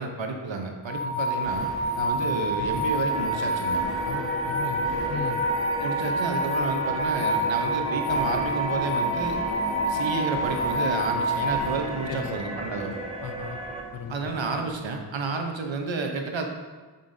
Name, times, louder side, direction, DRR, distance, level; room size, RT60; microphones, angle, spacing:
voice 1, 0.0-1.7 2.0-3.8 5.8-9.4 9.9-13.0 14.1-16.5, right 4 dB, 80° right, 4 dB, 0.8 m, -30 dB
sound 1, 0.9-11.7, right 1 dB, 85° left, 1.4 m, -27 dB
sound 2, 1.4-14.8, right 2 dB, 55° right, 1.3 m, -41 dB
sound 3, 3.1-13.8, equal, 15° right, 0.8 m, -35 dB
voice 2, 4.0-5.4 12.1-12.4 13.2-13.6 13.9-14.3, left 7 dB, 50° left, 9 dB, 0.5 m, -37 dB
7.3 x 5.5 x 2.6 m, 1.4 s
wide cardioid pair, 75°, 45 cm